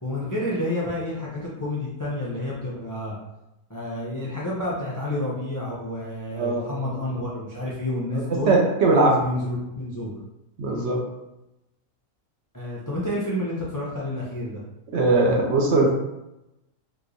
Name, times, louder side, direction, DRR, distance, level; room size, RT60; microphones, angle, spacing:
voice 1, 0.0-3.2 3.7-8.5 8.9-10.1 12.5-14.6, left 1 dB, 30° left, -6 dB, 0.3 m, -29 dB
voice 2, 6.3-6.6 8.5-9.1 10.6-11.0 14.9-15.9, right 3 dB, 60° right, -1 dB, 0.8 m, -20 dB
3.5 x 2.9 x 2.6 m, 0.91 s
omnidirectional pair, 1.4 m